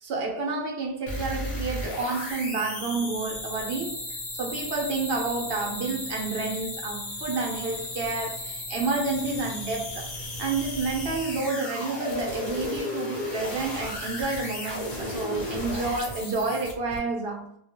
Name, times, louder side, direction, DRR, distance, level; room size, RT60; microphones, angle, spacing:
voice 1, 0.0-4.0 4.3-10.1 10.4-17.6, right 3 dB, 70° right, 0.8 m, -30 dB
sound 1, 1.1-17.0, left 1 dB, 50° left, 0.9 m, -35 dB
2.3 x 2.1 x 2.8 m
omnidirectional pair, 1.0 m